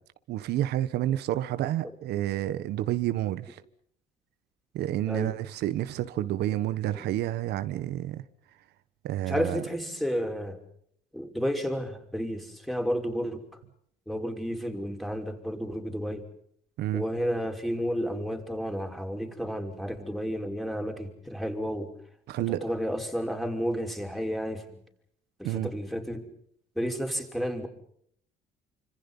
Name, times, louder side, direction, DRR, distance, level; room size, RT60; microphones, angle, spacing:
voice 1, 0.3-3.6 4.7-8.2 9.0-9.6 16.8-17.0 22.3-22.7 25.4-25.7, right 13 dB, 80° right, 1.4 m, -29 dB
voice 2, 9.3-10.6 11.1-13.4 14.1-16.3 16.9-21.9 22.6-24.6 25.4-26.3 26.8-27.7, equal, ahead, 5.5 m, -31 dB
29.5 x 26.5 x 5.6 m
cardioid pair, 110°, 17 cm